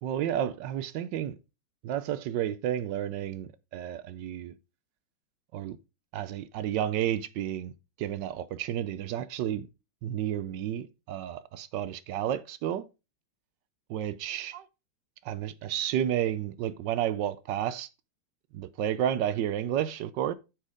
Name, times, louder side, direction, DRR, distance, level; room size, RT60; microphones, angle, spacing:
voice 1, 0.0-1.4 1.8-4.5 5.5-5.8 6.1-7.7 8.0-9.7 10.0-12.8 13.9-14.6 15.2-17.9 18.5-20.3, right 10 dB, 75° right, 1.0 m, -31 dB
9.0 x 4.5 x 4.9 m
omnidirectional pair, 2.3 m